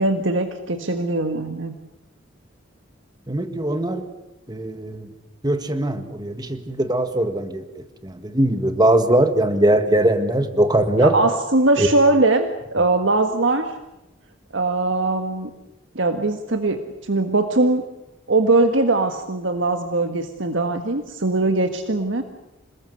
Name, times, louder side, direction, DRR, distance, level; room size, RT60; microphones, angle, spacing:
voice 1, 0.0-1.7 11.0-13.7 14.5-15.5 15.9-17.8 18.3-22.2, right 2 dB, 75° right, 7 dB, 1.6 m, -21 dB
voice 2, 3.3-4.1 4.5-5.1 5.4-11.1 11.8-11.9, right 1 dB, 20° right, 8 dB, 1.7 m, -20 dB
27.5 x 20.0 x 8.0 m, 0.92 s
head